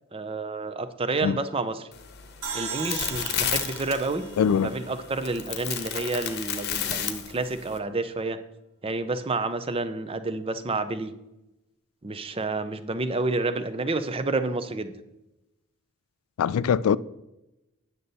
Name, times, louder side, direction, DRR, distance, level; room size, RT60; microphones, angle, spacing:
voice 1, 0.1-1.9 2.5-4.2 4.6-8.4 8.8-11.1 12.0-14.9, right 3 dB, 25° right, 0.5 m, -29 dB
sound 1, 1.9-7.8, left 8 dB, 50° left, 0.9 m, -32 dB
sound 2, 2.4-5.7, right 5 dB, 75° right, 2.0 m, -38 dB
voice 2, 4.4-4.7 16.4-17.0, left 7 dB, 75° left, 0.3 m, -22 dB
9.5 x 6.7 x 4.1 m
head